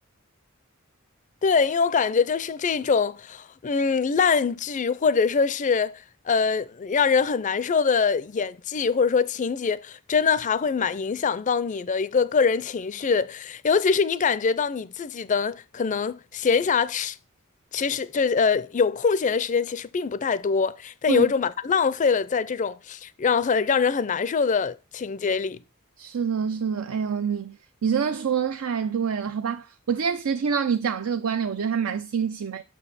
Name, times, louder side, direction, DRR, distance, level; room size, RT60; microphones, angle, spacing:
voice 1, 1.4-17.2 17.7-25.6, left 5 dB, 35° left, 0.4 m, -23 dB
voice 2, 26.0-32.6, right 6 dB, 80° right, 0.5 m, -26 dB
7.0 x 6.1 x 4.0 m
head